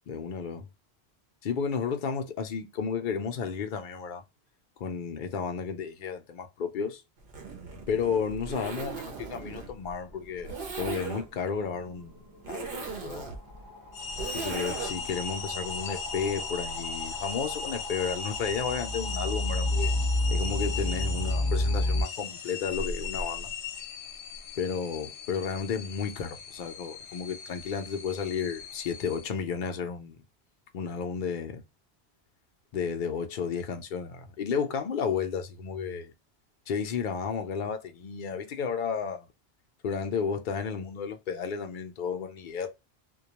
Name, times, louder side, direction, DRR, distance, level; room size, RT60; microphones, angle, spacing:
voice 1, 0.1-0.7 1.4-4.2 4.8-7.0 7.9-10.5 10.8-12.2 12.5-13.3 14.3-19.9 20.3-23.5 24.6-30.2 30.7-31.6 32.7-36.1 36.7-39.3 39.8-42.7, left 6 dB, 60° left, 0.6 m, -32 dB
Zipper (clothing), 7.2-15.2, right 5 dB, 60° right, 0.8 m, -39 dB
sound 1, 10.3-10.4 10.7-22.0, left 1 dB, 20° right, 0.9 m, -32 dB
sound 2, 13.9-29.3, left 4 dB, 80° left, 0.9 m, -38 dB
2.2 x 2.2 x 2.8 m
omnidirectional pair, 1.1 m